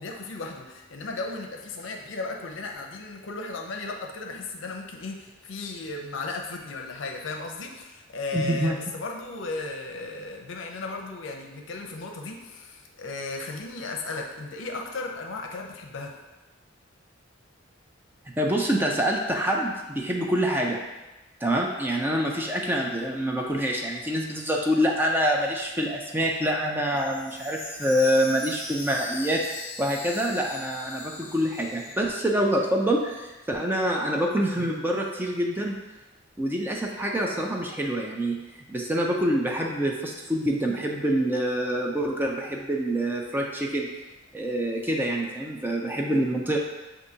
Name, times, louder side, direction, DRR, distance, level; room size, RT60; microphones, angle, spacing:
voice 1, 0.0-16.1, left 3 dB, 70° left, 2 dB, 0.6 m, -35 dB
voice 2, 8.3-8.8 18.4-20.8 21.4-35.7 36.4-38.4 38.7-43.9 44.3-46.6, equal, 10° right, 0 dB, 0.4 m, -26 dB
Chime, 26.9-32.8 33.2-33.3 33.8-33.9, left 2 dB, 40° left, 1.2 m, -40 dB
6.4 x 2.6 x 2.7 m, 1.1 s
head